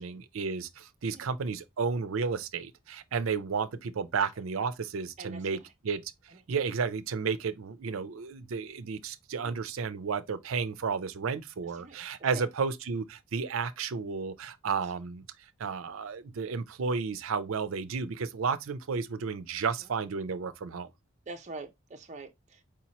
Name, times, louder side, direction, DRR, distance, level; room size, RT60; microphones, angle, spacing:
voice 1, 0.0-5.6 5.8-6.0 6.5-15.2 15.6-20.9, right 5 dB, 80° right, 0.5 m, -32 dB
voice 2, 5.2-5.7 6.3-6.4 9.4-9.6 11.7-12.0 12.3-12.4 21.3-22.7, right 3 dB, 35° right, 0.6 m, -45 dB
4.8 x 2.9 x 2.8 m
head